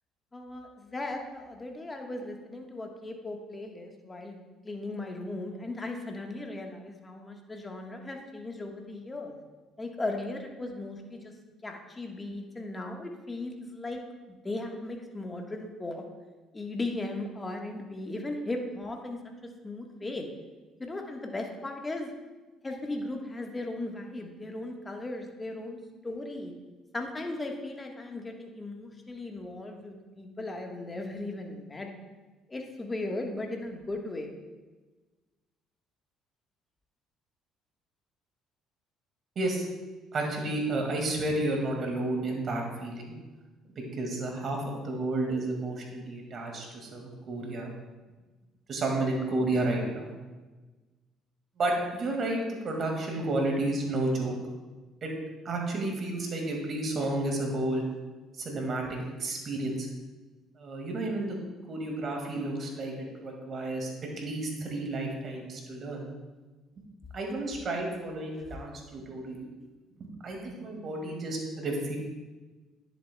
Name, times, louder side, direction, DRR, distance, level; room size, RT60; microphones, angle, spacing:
voice 1, 0.3-4.4 4.6-9.3 9.8-11.3 11.6-14.0 14.4-16.0 16.5-19.2 19.6-20.2 20.8-22.1 22.6-25.8 26.0-26.5 26.9-31.9 32.5-34.3, left 2 dB, 25° left, 2 dB, 1.4 m, -37 dB
voice 2, 40.1-43.1 43.7-47.7 48.7-50.1 51.6-54.3 55.0-55.1 55.4-57.9 58.4-59.9 60.6-61.4 61.7-63.9 64.2-66.1 67.1-69.5 70.0-72.0, right 2 dB, 50° right, 1 dB, 2.1 m, -31 dB
10.5 x 7.3 x 2.3 m, 1.2 s
hypercardioid pair, 60°, 0 cm